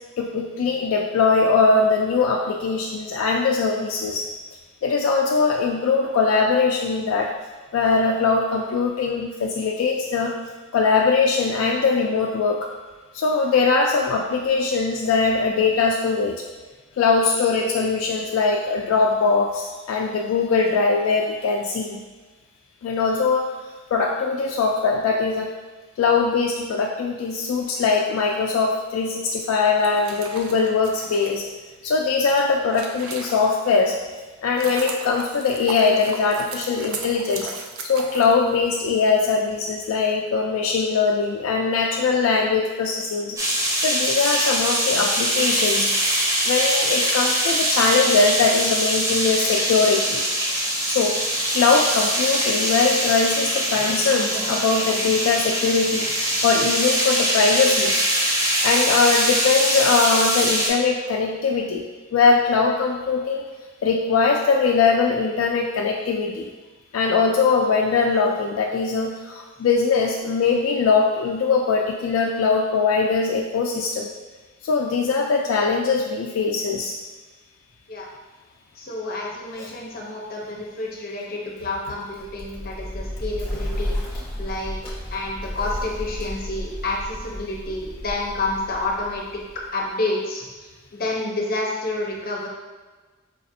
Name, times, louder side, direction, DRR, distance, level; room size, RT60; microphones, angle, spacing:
voice 1, 0.2-4.2 4.8-7.3 7.7-10.3 10.7-12.7 13.1-16.4 17.0-22.0 22.8-23.5 23.9-25.5 26.0-31.4 31.8-34.0 34.4-37.5 37.8-43.4 43.8-45.9 46.4-50.2 50.8-58.0 58.6-61.8 62.1-63.4 63.8-66.5 66.9-74.1 74.6-76.9 79.6-79.7, left 4 dB, 80° left, 0 dB, 0.3 m, -21 dB
sound 1, 29.7-33.8 34.2-38.9, right 4 dB, 80° right, 0.4 m, -36 dB
sound 2, 43.4-60.7, right 1 dB, 15° right, 0.4 m, -23 dB
voice 2, 78.8-84.8 85.1-89.2 89.7-90.5 90.9-92.5, left 2 dB, 45° left, -2 dB, 0.6 m, -29 dB
Bird, 82.1-89.9, left 1 dB, 25° left, 1.0 m, -32 dB
4.7 x 2.5 x 2.6 m, 1.3 s
head